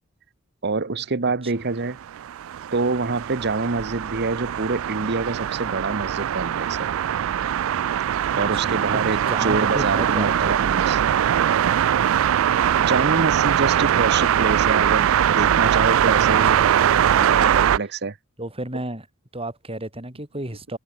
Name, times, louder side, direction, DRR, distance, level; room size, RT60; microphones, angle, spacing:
voice 1, 0.6-2.0 2.7-6.9 8.3-11.0 12.8-18.2, right 3 dB, 55° right, 1.1 m, -26 dB
sound 1, 2.0-17.8, right 9 dB, 70° right, 0.3 m, -21 dB
voice 2, 8.3-8.7 9.3-10.4 16.2-16.8 17.2-17.5 18.4-19.1 19.3-20.8, right 1 dB, 25° right, 6.0 m, -33 dB
head